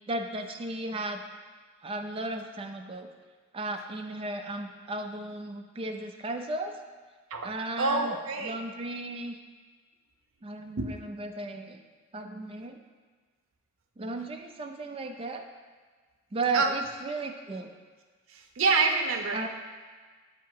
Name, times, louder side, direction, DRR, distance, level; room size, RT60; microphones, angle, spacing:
voice 1, 0.1-1.2 1.8-3.1 3.5-6.8 7.4-9.4 10.4-11.8 12.1-12.8 14.0-15.5 16.3-17.7 19.3-19.5, right 2 dB, 25° right, 4 dB, 0.4 m, -35 dB
voice 2, 7.8-8.6 10.7-11.0 16.5-16.7 18.3-19.5, right 4 dB, 80° right, 4 dB, 0.6 m, -27 dB
8.1 x 2.8 x 4.6 m, 1.5 s
head